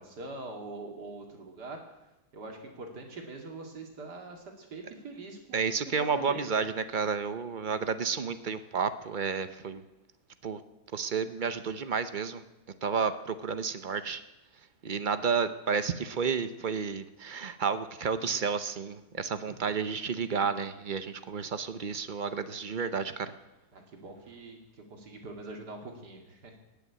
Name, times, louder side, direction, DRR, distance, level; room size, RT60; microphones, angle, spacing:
voice 1, 0.0-1.8 2.3-5.6 6.0-6.7 19.4-19.6 23.7-24.6 24.9-26.5, right 3 dB, 85° right, 2 dB, 2.9 m, -43 dB
voice 2, 5.5-9.8 10.4-10.6 10.9-12.4 12.8-14.2 14.8-23.3, right 5 dB, 45° right, 12 dB, 0.6 m, -31 dB
18.5 x 7.0 x 9.5 m, 0.97 s
omnidirectional pair, 1.7 m